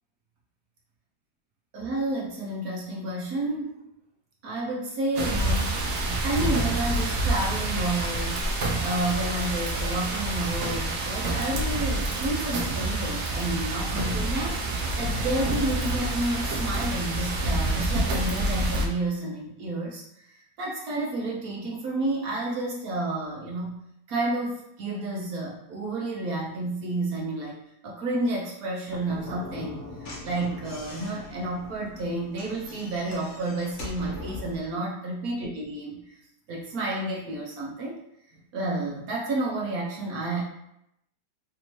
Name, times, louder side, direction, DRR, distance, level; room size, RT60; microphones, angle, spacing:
voice 1, 1.7-3.7 4.4-8.5 8.8-14.6 15.0-23.8 24.1-36.1 36.5-38.0 38.5-40.4, right 2 dB, 65° right, -3 dB, 1.0 m, -30 dB
sound 1, 5.2-18.9, right 2 dB, 80° right, 0.6 m, -27 dB
Slam / Knock, 28.8-34.7, left 1 dB, 45° left, 0.6 m, -41 dB
3.4 x 2.8 x 2.9 m, 0.80 s
omnidirectional pair, 1.9 m